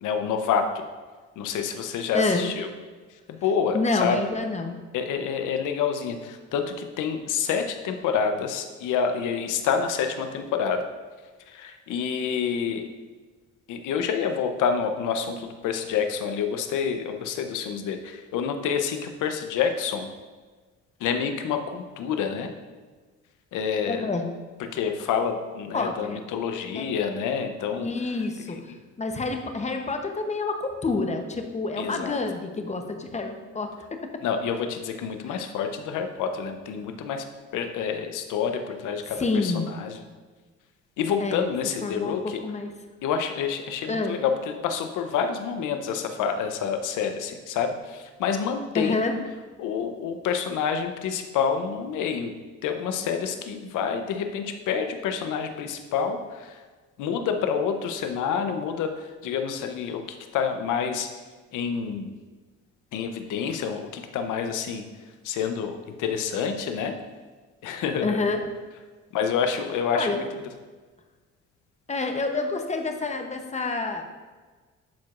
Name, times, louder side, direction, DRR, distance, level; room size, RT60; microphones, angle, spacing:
voice 1, 0.0-0.8 1.4-2.7 3.3-4.2 4.9-10.8 11.5-12.9 13.7-20.1 21.0-22.5 23.5-24.1 24.6-27.9 28.5-28.6 31.8-32.2 34.2-37.3 37.5-40.0 41.0-42.4 43.0-49.0 49.6-52.3 52.6-56.6 57.0-61.1 61.5-62.1 62.9-64.8 65.2-67.0 67.6-68.2 69.1-70.2, left 6 dB, 85° left, 6 dB, 0.7 m, -28 dB
voice 2, 2.1-2.5 3.7-4.8 23.9-24.3 25.7-26.2 26.7-26.8 27.8-34.0 35.2-35.5 39.1-39.7 41.2-41.5 41.8-42.7 43.9-44.2 48.7-49.2 68.0-68.5 69.9-70.2 71.9-74.0, left 3 dB, 25° left, 5 dB, 0.8 m, -28 dB
11.5 x 4.7 x 2.4 m, 1.4 s
cardioid pair, 90°, 30 cm